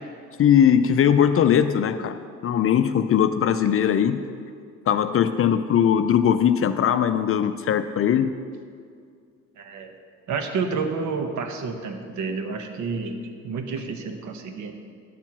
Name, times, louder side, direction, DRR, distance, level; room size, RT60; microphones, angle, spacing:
voice 1, 0.4-4.2 4.9-8.3, left 9 dB, 45° left, 10 dB, 0.4 m, -20 dB
voice 2, 9.6-9.9 10.3-13.2 13.4-14.7, right 4 dB, 70° right, 6 dB, 1.0 m, -29 dB
10.0 x 4.5 x 7.2 m, 2.2 s
cardioid pair, 90°, 30 cm